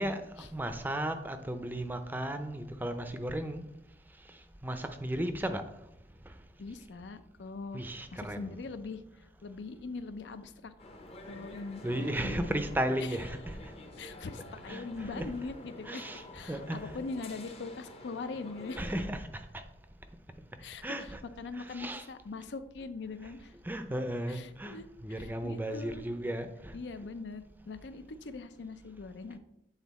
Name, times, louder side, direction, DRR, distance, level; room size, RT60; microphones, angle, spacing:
voice 1, 0.0-3.6 4.6-5.6 7.7-8.6 11.8-13.7 14.7-15.3 15.9-17.0 18.8-19.6 20.8-21.2 21.5-22.0 23.6-26.7, right 1 dB, 10° right, 0.4 m, -35 dB
voice 2, 6.6-7.8 8.1-9.0 9.4-10.7 11.3-11.8 12.2-12.6 13.0-13.2 14.0-18.9 20.6-23.5 24.3-26.0 26.7-29.4, left 3 dB, 80° left, 0.5 m, -42 dB
sound 1, 10.8-19.1, left 1 dB, 35° left, 0.7 m, -48 dB
8.1 x 3.8 x 4.1 m
head